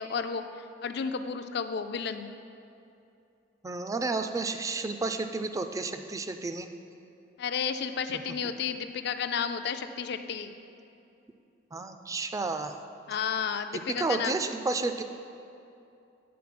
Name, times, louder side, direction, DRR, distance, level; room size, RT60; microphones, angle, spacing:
voice 1, 0.0-2.3 7.4-10.6 13.1-14.4, left 6 dB, 65° left, 9 dB, 0.4 m, -32 dB
voice 2, 3.6-6.7 11.7-12.8 14.0-15.0, right 3 dB, 20° right, 8 dB, 0.3 m, -31 dB
8.5 x 3.9 x 5.9 m, 2.7 s
head